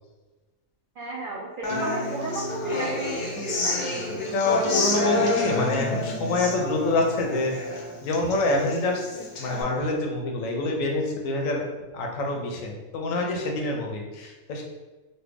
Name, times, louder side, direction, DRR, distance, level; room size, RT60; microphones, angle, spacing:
voice 1, 1.0-3.8, right 1 dB, 70° right, -3 dB, 0.4 m, -33 dB
Human voice / Acoustic guitar, 1.6-9.6, left 2 dB, 60° left, 0.5 m, -29 dB
voice 2, 4.3-7.6 8.0-11.7 11.9-14.6, left 2 dB, 75° left, 1 dB, 1.0 m, -26 dB
3.2 x 2.2 x 3.4 m, 1.2 s
omnidirectional pair, 1.5 m